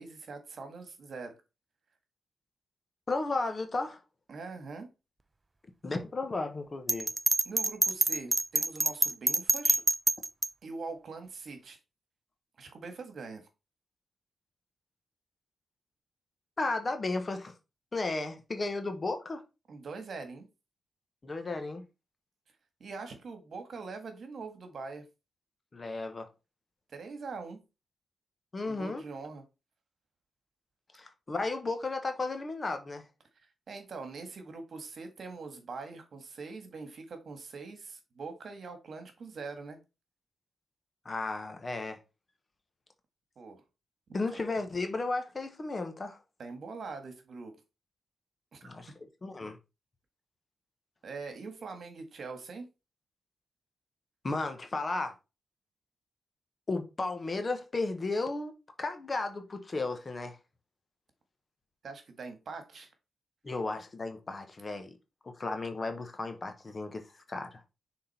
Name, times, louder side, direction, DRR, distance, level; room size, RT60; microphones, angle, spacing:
voice 1, 0.0-1.4 4.3-4.9 7.4-9.8 10.6-11.8 12.6-13.4 19.7-20.5 22.8-25.1 26.9-27.6 28.6-29.4 33.7-39.8 43.4-43.6 44.3-44.4 46.4-47.6 48.5-48.7 49.4-49.5 51.0-52.7 61.8-62.9, right 4 dB, 55° right, 1.7 m, -43 dB
voice 2, 3.1-4.0 5.8-7.1 16.6-17.5 17.9-19.4 21.2-21.9 25.7-26.3 28.5-29.0 30.9-33.0 41.0-42.0 44.1-46.2 48.6-48.9 49.2-49.6 54.2-55.1 56.7-60.4 63.4-65.0 65.3-67.6, left 3 dB, 30° left, 1.2 m, -34 dB
Bell, 6.9-10.5, right 2 dB, 20° right, 0.4 m, -26 dB
6.4 x 3.8 x 4.3 m
cardioid pair, 105°, 0 cm